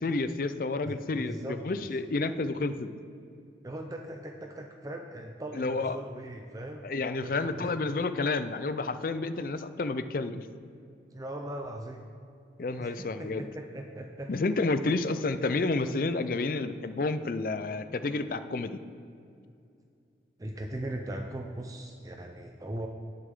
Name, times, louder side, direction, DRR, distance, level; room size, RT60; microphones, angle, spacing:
voice 1, 0.0-2.9 5.5-6.0 6.8-10.5 12.6-13.5 14.3-18.8, left 3 dB, 50° left, 11 dB, 0.4 m, -30 dB
voice 2, 0.9-1.6 3.6-6.9 7.2-7.7 11.1-12.0 12.8-14.3 20.4-22.9, right 1 dB, 20° right, 3 dB, 0.5 m, -39 dB
18.0 x 6.7 x 3.7 m, 2.4 s
head